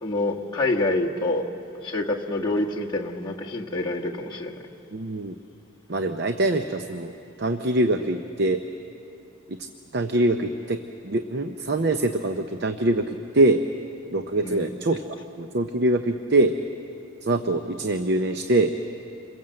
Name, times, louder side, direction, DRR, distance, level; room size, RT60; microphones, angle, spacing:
voice 1, 0.0-1.5 1.8-4.6 14.4-14.7, left 2 dB, 20° left, -3 dB, 1.5 m, -27 dB
voice 2, 4.9-5.3 5.9-7.1 7.4-8.6 9.5-9.6 9.9-13.1 13.3-13.6 14.1-15.0 15.4-16.5 17.2-18.7, right 2 dB, 55° right, 7 dB, 0.8 m, -23 dB
28.0 x 21.5 x 7.8 m, 2.7 s
head